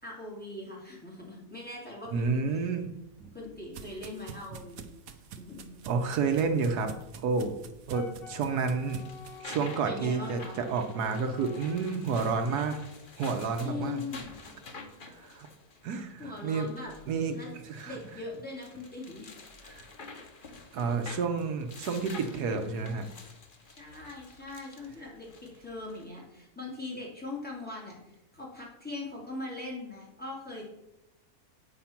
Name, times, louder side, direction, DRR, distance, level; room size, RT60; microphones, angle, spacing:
voice 1, 0.0-2.6 3.3-5.7 9.8-10.6 13.6-14.3 16.2-16.9 17.3-17.5 17.8-19.3 23.7-30.7, left 2 dB, 5° left, -4 dB, 2.7 m, -41 dB
voice 2, 2.1-2.9 5.9-6.9 7.2-7.6 7.9-9.0 9.4-12.8 13.2-14.0 15.1-15.5 15.8-16.7 17.1-18.0 19.6-19.8 20.7-23.1, right 5 dB, 85° right, 7 dB, 1.4 m, -30 dB
sound 1, 2.8-9.4, right 6 dB, 70° right, 1.2 m, -48 dB
Wind instrument woodwind instrument, 7.9-11.8, left 6 dB, 55° left, 0.6 m, -49 dB
sound 2, 8.6-26.1, left 3 dB, 35° left, 1.1 m, -49 dB
8.6 x 5.9 x 5.8 m, 0.88 s
omnidirectional pair, 1.6 m